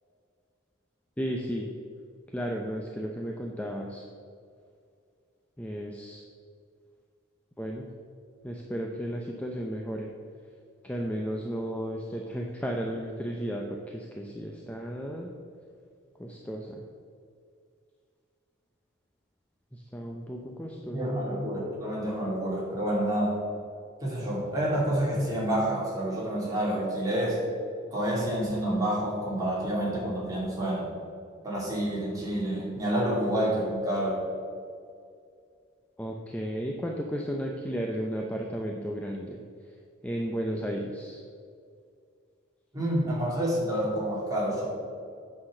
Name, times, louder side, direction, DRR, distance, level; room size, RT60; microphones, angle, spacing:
voice 1, 1.2-1.7 2.3-4.0 5.6-6.2 7.6-7.9 8.4-10.1 10.8-15.3 16.2-16.8 19.7-21.1 36.0-39.4 40.0-41.2, equal, 5° left, 0 dB, 0.5 m, -34 dB
voice 2, 20.9-23.4 24.0-27.5 27.9-30.9 31.4-34.2 42.7-44.7, right 1 dB, 15° right, -5 dB, 2.6 m, -28 dB
8.7 x 5.8 x 6.4 m, 2.3 s
head